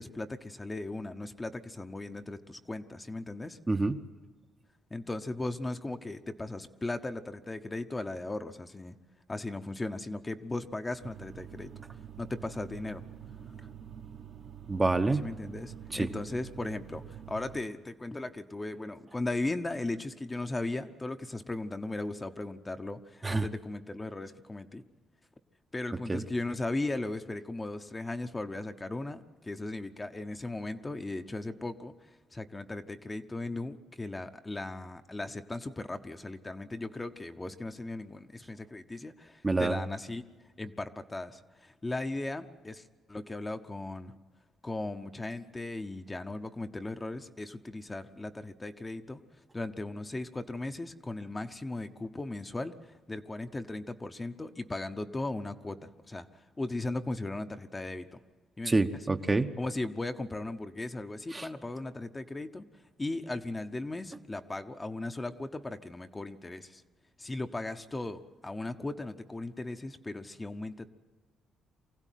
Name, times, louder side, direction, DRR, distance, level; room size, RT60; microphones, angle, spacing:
voice 1, 0.0-3.6 4.9-9.0 9.3-11.7 12.2-13.0 13.6-13.7 15.1-24.8 25.7-40.2 40.6-44.1 44.6-49.2 49.5-58.2 58.6-58.7 59.6-62.6 63.0-66.8 67.2-70.9, left 2 dB, 15° left, 8 dB, 0.8 m, -37 dB
voice 2, 3.7-4.0 14.7-15.2 15.9-16.1 23.2-23.5 26.1-26.2 39.4-39.8 58.7-59.5 61.3-61.5, right 3 dB, 20° right, 7 dB, 0.9 m, -27 dB
sound 1, 11.0-17.6, right 8 dB, 55° right, 1.3 m, -46 dB
24.0 x 16.0 x 9.2 m, 1.4 s
cardioid pair, 120°, 0 cm